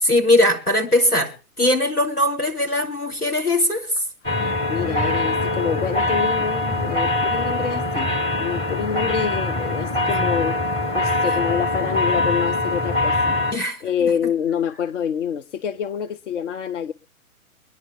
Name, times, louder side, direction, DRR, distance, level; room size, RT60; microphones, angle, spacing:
voice 1, 0.0-4.0 13.5-14.1, left 1 dB, 85° left, 3.4 m, -20 dB
voice 2, 4.2-8.1 8.4-10.6 10.9-13.4 13.8-16.9, left 8 dB, 55° left, 0.8 m, -26 dB
sound 1, 4.2-13.5, left 2 dB, 15° left, 1.2 m, -23 dB
24.0 x 10.5 x 3.5 m
figure-of-eight pair, 115°, 44 cm